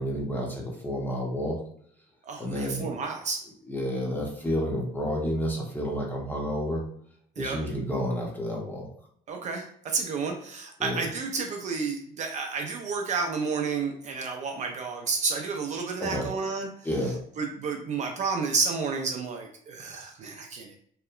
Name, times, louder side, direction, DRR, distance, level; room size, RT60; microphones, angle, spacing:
voice 1, 0.0-1.6 2.4-2.9 3.7-6.8 7.4-8.9 10.8-11.0 16.0-16.3 16.8-17.2, equal, 10° left, -1 dB, 0.7 m, -30 dB
voice 2, 2.2-3.4 7.4-7.6 9.3-16.7 17.4-20.7, right 4 dB, 45° right, 3 dB, 0.4 m, -31 dB
2.8 x 2.1 x 2.3 m, 0.63 s
cardioid pair, 110°, 17 cm